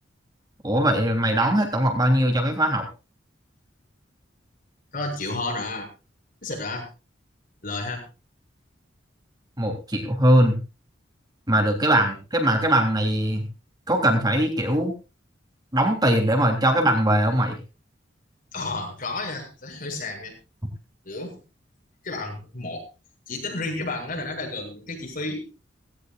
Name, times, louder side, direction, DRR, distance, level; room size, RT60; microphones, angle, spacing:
voice 1, 0.6-2.9 9.6-10.6 11.5-13.4 13.9-14.9 15.7-17.6, right 1 dB, 20° right, 3 dB, 3.4 m, -21 dB
voice 2, 4.9-5.9 6.4-6.9 7.6-8.0 12.0-12.1 18.5-20.4 21.0-21.4 22.0-22.9 23.3-25.5, left 2 dB, 50° left, 1 dB, 7.2 m, -31 dB
18.0 x 17.0 x 2.5 m, 0.31 s
head